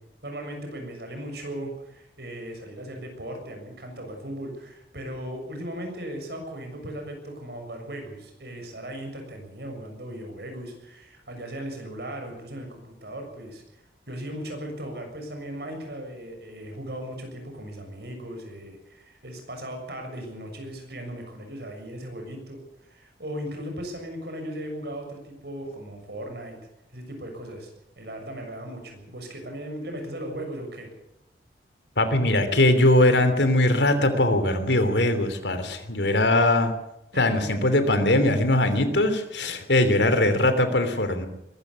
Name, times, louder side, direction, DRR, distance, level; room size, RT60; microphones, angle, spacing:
voice 1, 0.0-26.6 26.9-27.7 28.0-30.9 37.1-37.6, right 1 dB, 65° right, 4 dB, 6.8 m, -37 dB
voice 2, 32.0-36.7 37.2-41.3, left 1 dB, 85° left, 9 dB, 3.0 m, -21 dB
22.0 x 14.0 x 8.4 m, 0.85 s
head